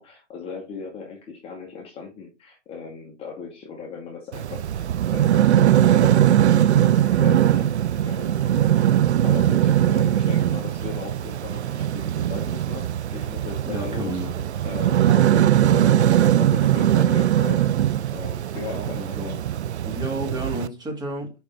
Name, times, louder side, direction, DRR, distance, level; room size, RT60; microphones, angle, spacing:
voice 1, 0.0-7.8 8.0-8.9 9.2-12.8 13.1-14.2 14.6-15.4 15.7-17.7 18.1-19.4, left 5 dB, 15° left, 1.1 m, -37 dB
sound 1, 4.3-20.7, right 11 dB, 70° right, 0.5 m, -20 dB
voice 2, 13.6-14.6 15.1-15.5 18.5-19.4 19.8-21.3, right 1 dB, 10° right, 1.7 m, -32 dB
5.3 x 5.0 x 4.2 m
figure-of-eight pair, 125°, 35 cm